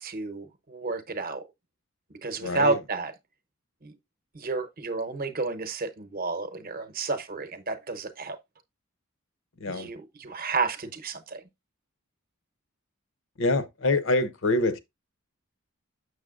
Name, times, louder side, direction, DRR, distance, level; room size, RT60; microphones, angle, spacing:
voice 1, 0.0-1.4 2.2-3.1 3.8-3.9 4.3-8.4 9.7-11.4, right 3 dB, 40° right, 0.8 m, -31 dB
voice 2, 2.4-2.8 9.6-9.9 13.4-14.8, left 2 dB, 60° left, 0.7 m, -25 dB
6.9 x 6.5 x 2.4 m
head